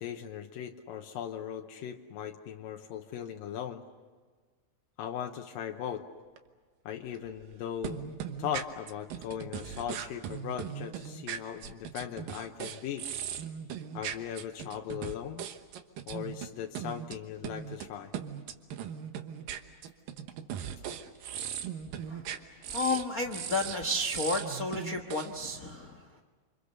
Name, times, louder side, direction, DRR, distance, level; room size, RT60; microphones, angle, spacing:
voice 1, 0.0-3.8 5.0-6.1 6.9-8.1 8.4-13.1 13.9-15.5 16.1-18.1, left 9 dB, 85° left, 3 dB, 2.7 m, -38 dB
sound 1, 6.4-6.5 7.1-7.6 7.8-16.5 16.8-17.2 17.4-17.9 18.1-23.0 23.3-25.3, right 9 dB, 80° right, 2.9 m, -38 dB
voice 2, 22.7-26.2, left 2 dB, 65° left, 5 dB, 0.8 m, -32 dB
28.5 x 26.0 x 6.7 m, 1.5 s
omnidirectional pair, 4.0 m